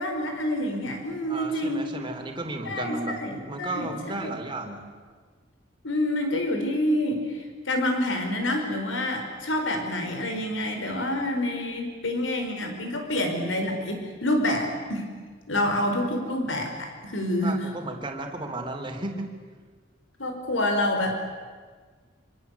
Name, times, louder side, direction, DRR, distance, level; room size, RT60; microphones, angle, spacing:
voice 1, 0.0-1.9 2.7-3.9 4.2-4.3 5.8-15.0 15.5-17.6 20.2-21.1, left 1 dB, 80° left, 4 dB, 4.8 m, -27 dB
voice 2, 1.3-3.2 3.5-4.8 17.4-19.3, right 2 dB, 25° right, 3 dB, 3.3 m, -34 dB
26.0 x 25.5 x 8.3 m, 1.5 s
head